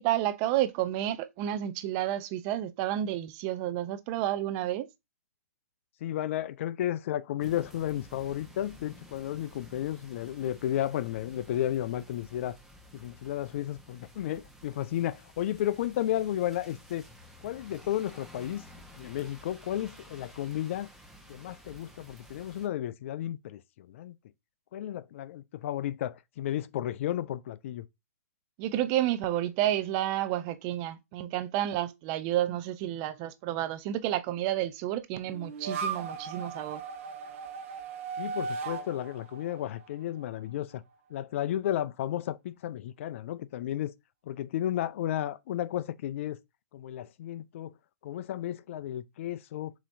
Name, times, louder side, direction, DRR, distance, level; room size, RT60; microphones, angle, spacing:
voice 1, 0.0-4.9 28.6-36.8, right 13 dB, 35° right, 0.5 m, -30 dB
voice 2, 6.0-12.6 12.9-17.1 17.4-18.7 18.9-20.9 21.3-24.2 24.7-27.9 38.2-40.8 41.1-43.9 44.2-46.4 46.7-47.7 48.0-49.7, left 12 dB, 50° left, 0.4 m, -33 dB
sound 1, 7.4-22.7, equal, ahead, 0.9 m, -53 dB
sound 2, 35.2-40.5, right 5 dB, 55° right, 1.0 m, -37 dB
7.2 x 2.9 x 2.6 m
hypercardioid pair, 130°, 9 cm